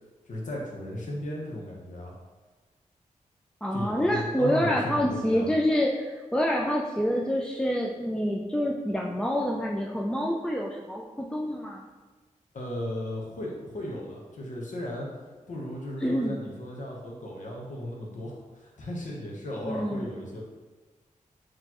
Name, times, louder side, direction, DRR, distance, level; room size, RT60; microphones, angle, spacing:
voice 1, 0.2-2.1 3.7-5.5 12.5-15.1 15.5-20.4, left 1 dB, 65° left, -2 dB, 0.9 m, -35 dB
voice 2, 3.6-11.8 16.0-16.4 19.6-20.1, equal, 5° left, -1 dB, 0.3 m, -27 dB
4.1 x 3.1 x 2.9 m, 1.3 s
cardioid pair, 70°, 14 cm